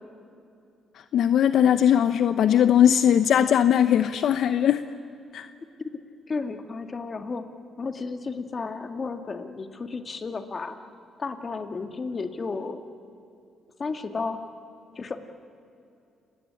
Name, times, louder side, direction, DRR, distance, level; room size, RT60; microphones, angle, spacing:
voice 1, 1.1-4.8 5.3-5.5, left 9 dB, 70° left, 11 dB, 0.8 m, -19 dB
voice 2, 6.3-7.4 7.8-10.8 11.2-12.8 13.8-14.4 15.0-15.2, left 4 dB, 35° left, 7 dB, 2.2 m, -33 dB
29.5 x 19.0 x 10.0 m, 2.7 s
cardioid pair, 90°, 0 cm